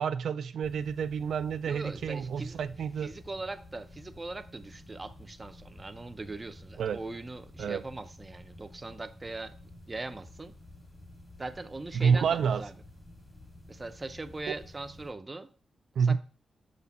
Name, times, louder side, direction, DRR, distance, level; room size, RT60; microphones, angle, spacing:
voice 1, 0.0-3.1 6.8-7.0 7.6-7.8 11.9-12.6 14.5-14.6 16.0-16.2, right 6 dB, 80° right, 0.3 m, -28 dB
sound 1, 0.6-15.1, left 1 dB, 25° left, 2.1 m, -51 dB
voice 2, 1.7-2.6 3.0-9.5 9.9-10.5 11.4-12.7 13.7-15.5 16.0-16.2, right 2 dB, 25° right, 0.6 m, -40 dB
6.7 x 4.2 x 4.1 m
cardioid pair, 105°, 0 cm